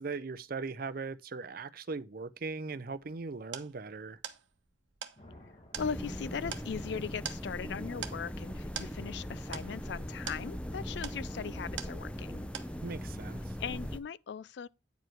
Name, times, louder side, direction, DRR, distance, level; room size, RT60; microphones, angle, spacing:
voice 1, 0.0-4.2 12.8-13.5, right 4 dB, 55° right, 0.6 m, -39 dB
sound 1, 2.8-12.3 12.5-13.1, right 8 dB, 85° right, 0.9 m, -45 dB
sound 2, 5.2-7.1, left 1 dB, 35° left, 1.8 m, -57 dB
sound 3, 5.7-14.0, equal, 5° left, 0.6 m, -40 dB
voice 2, 5.8-12.5 13.6-14.7, left 6 dB, 65° left, 0.4 m, -39 dB
9.3 x 4.8 x 4.4 m
head